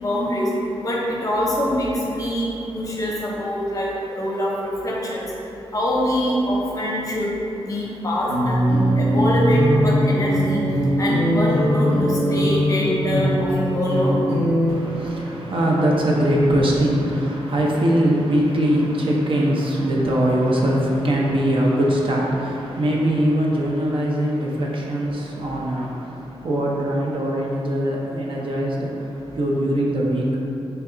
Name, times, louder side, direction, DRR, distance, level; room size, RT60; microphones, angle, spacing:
voice 1, 0.0-0.5 0.8-5.3 5.7-7.3 7.6-10.6 11.0-14.1, left 1 dB, 35° left, -4 dB, 0.6 m, -24 dB
sound 1, 8.3-14.7, equal, 85° right, 1.4 m, -20 dB
voice 2, 14.7-30.4, right 1 dB, 55° right, -3 dB, 0.6 m, -21 dB
3.3 x 2.3 x 3.7 m, 2.9 s
wide cardioid pair, 105°, 10 cm